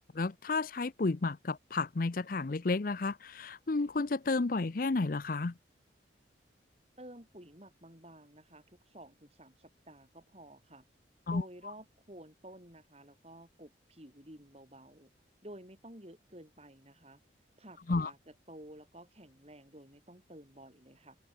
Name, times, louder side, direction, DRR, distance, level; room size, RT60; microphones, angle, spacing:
voice 1, 0.1-5.5 11.3-11.4 17.9-18.1, left 3 dB, 45° left, 0.6 m, -32 dB
voice 2, 7.0-10.8 11.3-15.1 15.4-17.2 17.6-21.2, right 1 dB, 35° right, 6.1 m, -52 dB
open air
head